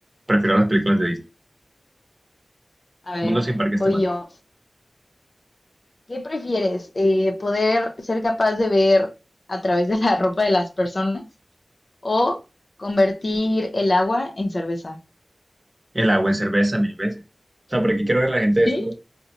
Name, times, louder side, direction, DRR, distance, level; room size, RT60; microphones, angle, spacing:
voice 1, 0.3-1.2 3.2-4.0 15.9-17.1 17.7-18.9, right 1 dB, 30° right, 0.8 m, -20 dB
voice 2, 3.1-3.5 3.7-4.3 6.1-9.1 9.5-11.3 12.0-12.4 12.8-15.0 18.7-18.9, left 2 dB, 55° left, 0.6 m, -22 dB
3.7 x 2.1 x 2.8 m
wide cardioid pair, 50°, 0 cm